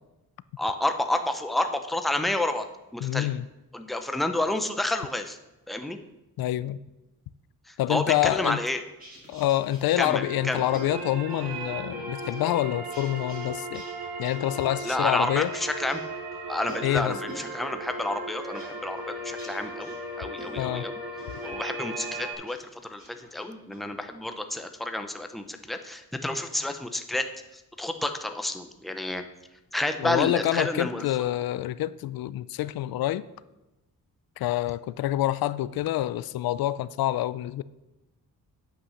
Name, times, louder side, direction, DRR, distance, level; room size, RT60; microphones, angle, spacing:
voice 1, 0.6-2.7 2.9-3.3 3.7-5.4 5.7-6.0 7.7-8.8 10.0-10.6 14.8-16.0 16.5-21.0 21.4-27.3 27.5-29.2 29.7-31.0, left 1 dB, ahead, 7 dB, 0.6 m, -30 dB
voice 2, 3.0-3.5 6.4-6.8 7.8-8.6 9.3-13.8 14.2-15.5 16.8-17.2 20.6-20.8 30.0-33.2 34.4-37.6, left 14 dB, 80° left, 17 dB, 0.5 m, -27 dB
sound 1, 8.9-11.9 12.2-13.5 13.7-17.6 17.9-20.8 21.2-21.5 21.9-22.6 22.9-23.8, right 1 dB, 25° right, 4.8 m, -48 dB
sound 2, 9.9-22.3, right 2 dB, 75° right, 3.8 m, -36 dB
8.6 x 8.2 x 6.4 m, 1.0 s
wide cardioid pair, 170°, 35 cm